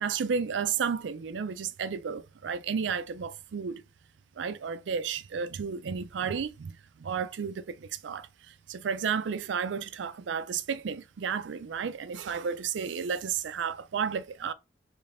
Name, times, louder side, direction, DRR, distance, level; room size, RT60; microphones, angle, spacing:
voice 1, 0.0-3.8 4.4-14.5, right 6 dB, 85° right, 0.4 m, -32 dB
3.3 x 3.2 x 2.5 m
head